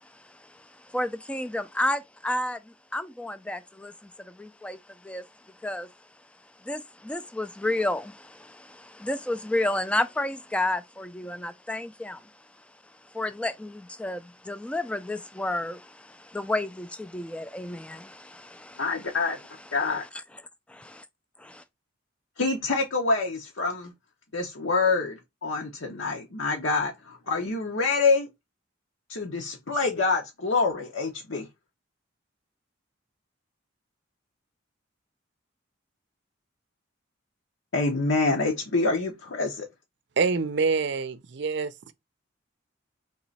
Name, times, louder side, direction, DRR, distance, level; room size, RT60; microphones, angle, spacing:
voice 1, 0.0-5.9 6.6-12.3 13.0-19.2 20.7-21.0 21.4-21.6, left 1 dB, 5° left, 0.3 m, -32 dB
voice 2, 18.8-19.4 19.7-20.1 22.4-23.9 24.3-28.3 29.1-31.5 37.7-39.7, left 3 dB, 75° left, 0.9 m, -26 dB
voice 3, 40.2-41.9, right 4 dB, 60° right, 0.5 m, -26 dB
3.8 x 3.0 x 4.0 m
head